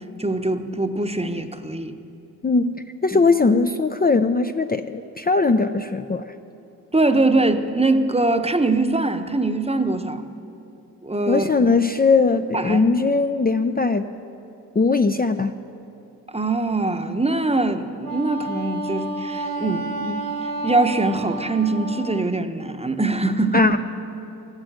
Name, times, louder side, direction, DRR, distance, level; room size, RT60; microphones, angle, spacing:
voice 1, 0.2-1.9 3.1-3.2 6.9-10.2 11.0-11.7 12.5-12.9 16.3-23.7, right 2 dB, 15° right, 8 dB, 0.9 m, -22 dB
voice 2, 3.0-6.2 11.3-14.1 14.8-15.5 23.5-23.8, left 4 dB, 25° left, 8 dB, 0.5 m, -19 dB
Wind instrument woodwind instrument, 18.0-22.3, right 2 dB, 60° right, 1.3 m, -30 dB
14.0 x 9.0 x 9.3 m, 2.8 s
cardioid pair, 60°, 37 cm